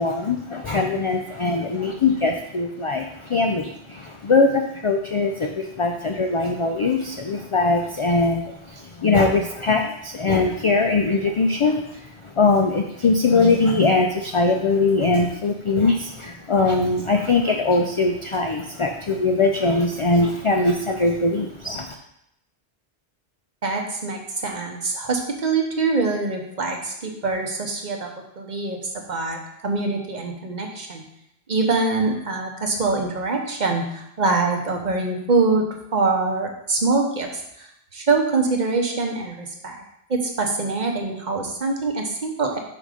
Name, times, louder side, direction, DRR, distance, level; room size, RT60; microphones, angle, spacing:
voice 1, 0.0-21.9, left 3 dB, 55° left, 3 dB, 0.3 m, -21 dB
voice 2, 23.6-31.0 31.5-39.8 40.1-42.6, right 3 dB, 45° right, 2 dB, 0.9 m, -24 dB
5.4 x 3.8 x 4.9 m, 0.78 s
omnidirectional pair, 1.1 m